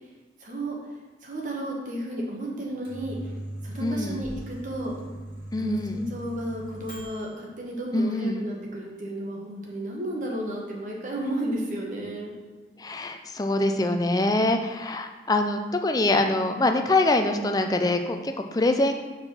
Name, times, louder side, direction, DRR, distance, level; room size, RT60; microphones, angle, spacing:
voice 1, 0.4-0.7 1.2-3.2 3.6-4.9 5.6-12.3 16.4-16.8, right 1 dB, 45° right, -2 dB, 1.3 m, -33 dB
Microwave oven, 2.6-7.4, right 1 dB, 30° right, 1.8 m, -39 dB
voice 2, 3.8-4.2 5.5-6.0 7.9-8.4 12.8-18.9, left 2 dB, 20° left, 5 dB, 0.4 m, -24 dB
4.8 x 4.5 x 6.0 m, 1.3 s
head